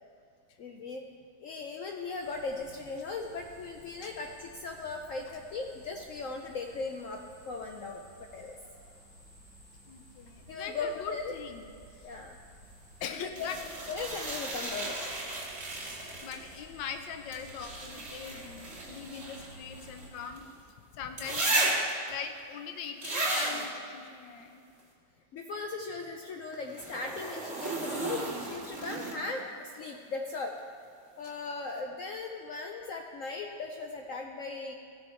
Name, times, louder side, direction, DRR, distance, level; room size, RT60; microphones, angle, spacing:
voice 1, 0.6-1.0 1.4-8.6 10.5-11.3 12.0-12.4 13.1-13.5 13.9-15.1 25.3-30.5 31.2-34.7, left 3 dB, 90° left, 3 dB, 0.7 m, -38 dB
sound 1, 2.2-20.1, right 1 dB, 35° left, 2.9 m, -55 dB
voice 2, 9.9-11.7 13.0-13.6 16.2-20.4 20.9-21.8 22.1-24.6, left 7 dB, 75° left, 7 dB, 1.4 m, -41 dB
sound 2, 13.4-16.6 17.3-20.5 21.2-22.1 23.0-23.7 26.7-29.4 31.3-31.4, right 2 dB, 40° right, 2.3 m, -34 dB
16.0 x 6.5 x 4.4 m, 2.3 s
omnidirectional pair, 2.1 m